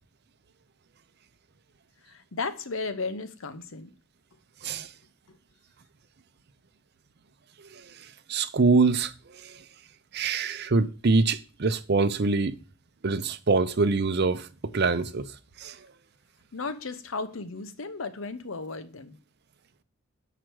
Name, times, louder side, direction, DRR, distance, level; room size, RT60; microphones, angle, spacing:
voice 1, 2.0-3.9 5.3-5.4 16.5-19.2, left 4 dB, 85° left, 0.9 m, -35 dB
voice 2, 8.3-9.1 9.4-9.6 10.1-12.6 13.0-15.3 15.6-15.8, right 3 dB, 55° right, 0.6 m, -24 dB
7.6 x 4.9 x 4.7 m
head